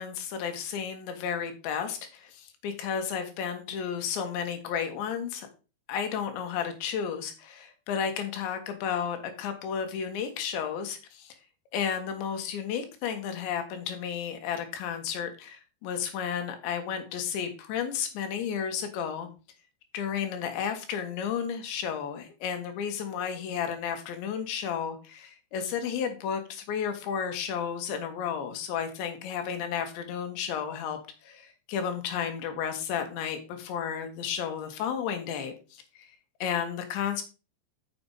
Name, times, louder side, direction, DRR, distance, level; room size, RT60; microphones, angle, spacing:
voice 1, 0.0-5.5 5.9-11.3 11.7-19.3 19.9-36.1 36.4-37.2, left 7 dB, 85° left, 6 dB, 3.8 m, -32 dB
7.0 x 6.8 x 5.5 m, 0.33 s
omnidirectional pair, 5.1 m